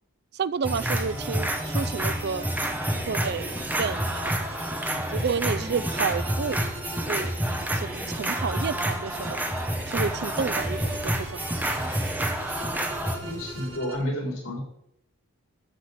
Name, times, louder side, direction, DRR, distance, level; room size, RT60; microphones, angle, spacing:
voice 1, 0.3-2.5 3.1-4.4 5.1-6.6 7.1-7.3 7.7-9.4 9.9-11.5, right 5 dB, 50° right, 0.4 m, -30 dB
sound 1, 0.6-13.2, right 1 dB, 10° right, 1.2 m, -29 dB
sound 2, 0.6-14.0, right 3 dB, 75° right, 1.9 m, -44 dB
sound 3, 0.8-13.8, equal, 15° left, 5.3 m, -44 dB
voice 2, 13.2-14.6, equal, 80° left, 3.9 m, -31 dB
14.0 x 6.6 x 5.1 m
head